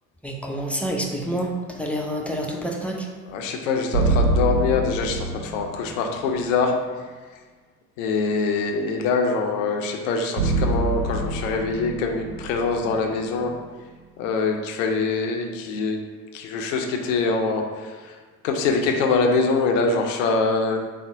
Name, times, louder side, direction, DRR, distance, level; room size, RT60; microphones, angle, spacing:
voice 1, 0.2-1.5 1.8-3.1, equal, 5° left, -1 dB, 0.6 m, -28 dB
voice 2, 3.3-6.7 8.0-13.5 14.2-16.0 16.3-18.2 18.4-20.8, left 4 dB, 70° left, 3 dB, 0.6 m, -24 dB
sound 1, 3.9-6.1 10.4-13.6, right 2 dB, 90° right, 0.7 m, -25 dB
4.1 x 2.1 x 4.6 m, 1.5 s
hypercardioid pair, 55°, 40 cm